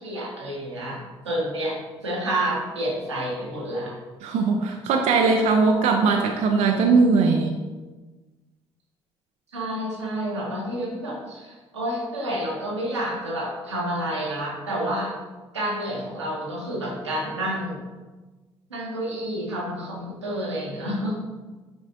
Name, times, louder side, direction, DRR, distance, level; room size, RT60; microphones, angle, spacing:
voice 1, 0.0-3.9 9.5-15.1 15.5-17.8 18.7-21.2, right 1 dB, 85° right, -4 dB, 1.3 m, -29 dB
voice 2, 4.2-7.5, right 4 dB, 55° right, 2 dB, 0.6 m, -20 dB
9.3 x 4.2 x 2.6 m, 1.2 s
figure-of-eight pair, 50°, 14 cm